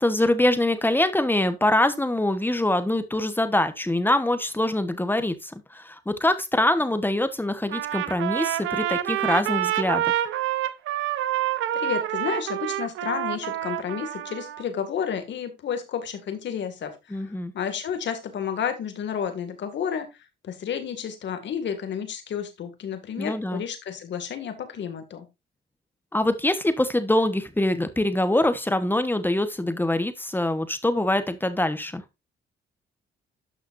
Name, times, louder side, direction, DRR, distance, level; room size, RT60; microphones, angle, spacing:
voice 1, 0.0-10.1 17.1-17.5 23.2-23.6 26.1-32.0, left 1 dB, 10° left, 1.2 m, -24 dB
Trumpet, 7.7-14.6, right 12 dB, 85° right, 0.8 m, -27 dB
voice 2, 11.7-17.2 17.5-20.1 20.4-25.2, left 8 dB, 65° left, 2.1 m, -31 dB
12.0 x 6.0 x 2.6 m
cardioid pair, 90°, 20 cm